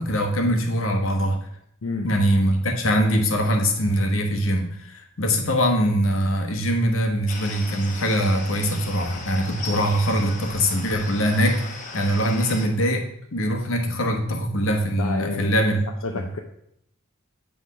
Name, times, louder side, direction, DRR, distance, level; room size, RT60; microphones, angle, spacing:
voice 1, 0.0-1.4 2.0-13.0 13.3-15.8 16.2-16.3, equal, 70° left, 4 dB, 1.2 m, -22 dB
sound 1, 7.3-12.7, left 3 dB, 35° left, 1.0 m, -37 dB
voice 2, 15.0-15.5 16.0-16.4, left 3 dB, 85° left, 2 dB, 0.6 m, -29 dB
8.3 x 3.5 x 5.5 m, 0.75 s
head